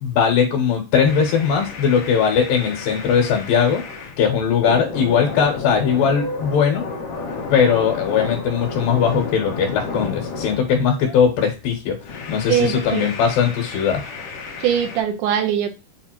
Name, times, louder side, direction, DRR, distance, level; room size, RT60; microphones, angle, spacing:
voice 1, 0.0-3.8 4.2-6.8 7.5-12.0 12.3-14.0, left 7 dB, 85° left, 2 dB, 2.6 m, -19 dB
sound 1, 1.0-4.2 4.6-11.3 12.0-15.0, left 4 dB, 65° left, 2.0 m, -32 dB
voice 2, 12.5-13.1 14.6-15.7, right 9 dB, 80° right, 5 dB, 2.1 m, -21 dB
6.4 x 2.4 x 2.8 m, 0.29 s
omnidirectional pair, 3.9 m